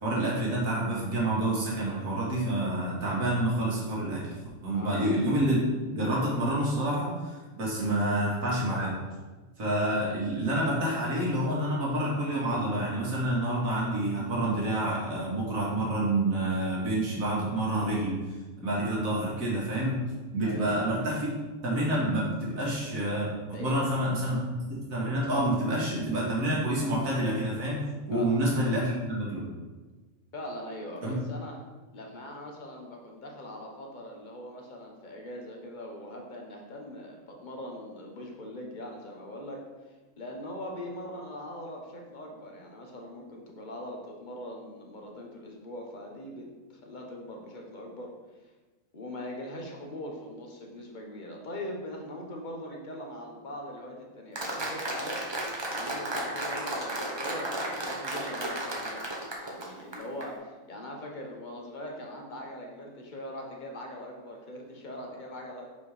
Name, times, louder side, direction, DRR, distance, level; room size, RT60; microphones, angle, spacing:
voice 1, 0.0-4.3 4.6-5.6 5.9-8.9 9.6-18.2 18.6-20.0 20.3-21.3 21.6-29.4 31.0-31.2, right 1 dB, 75° right, -5 dB, 2.3 m, -28 dB
voice 2, 4.7-5.1 20.4-20.8 23.5-23.9 28.1-28.3 30.3-31.5 31.9-39.6 40.2-48.1 48.9-55.2 55.7-59.0 59.4-65.7, left 1 dB, 40° left, 0 dB, 1.0 m, -41 dB
Applause, 54.4-60.3, right 1 dB, 25° right, 0.8 m, -34 dB
5.3 x 4.4 x 4.9 m, 1.3 s
omnidirectional pair, 1.4 m